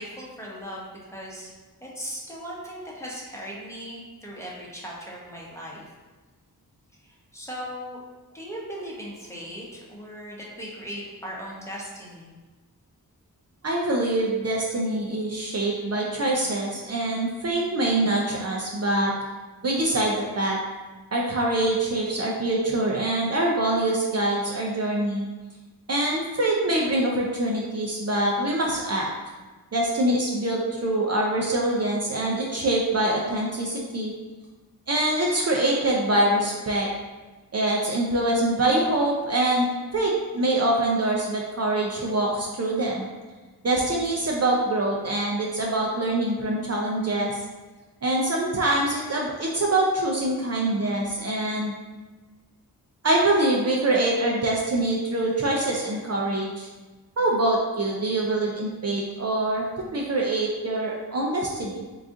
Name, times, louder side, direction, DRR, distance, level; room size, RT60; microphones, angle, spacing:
voice 1, 0.0-1.5 1.8-5.9 7.0-8.0 8.3-12.4, equal, 5° left, -5 dB, 0.8 m, -38 dB
voice 2, 13.6-19.1 19.6-20.6 21.1-25.3 25.9-29.1 29.7-34.1 34.9-36.9 37.5-43.1 43.6-47.3 48.0-51.7 53.0-56.7 57.2-61.8, right 1 dB, 45° right, -2 dB, 0.4 m, -24 dB
3.9 x 2.4 x 3.6 m, 1.3 s
wide cardioid pair, 105°, 38 cm